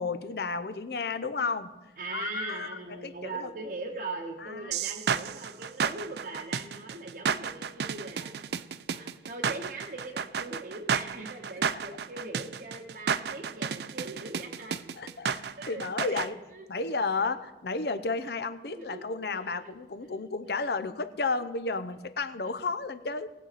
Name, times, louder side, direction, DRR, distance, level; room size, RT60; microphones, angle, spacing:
voice 1, 0.0-1.7 2.1-3.5 4.4-4.7 11.7-11.8 15.0-16.4 16.7-23.3, left 4 dB, 65° left, 11 dB, 0.7 m, -32 dB
voice 2, 2.0-8.5 8.9-14.8 15.6-16.7 17.1-17.3 18.7-19.0 19.3-19.7 22.4-22.5, right 3 dB, 50° right, -1 dB, 0.9 m, -41 dB
sound 1, 4.7-16.3, right 7 dB, 65° right, 0.4 m, -31 dB
20.0 x 7.5 x 4.1 m, 1.1 s
head